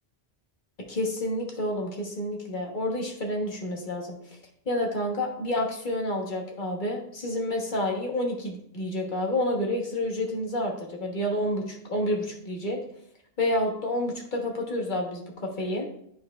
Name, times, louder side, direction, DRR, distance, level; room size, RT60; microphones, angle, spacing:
voice 1, 0.9-4.2 4.7-12.8 13.4-15.9, left 1 dB, 45° left, 0 dB, 1.4 m, -29 dB
11.0 x 4.4 x 2.5 m, 0.70 s
omnidirectional pair, 1.1 m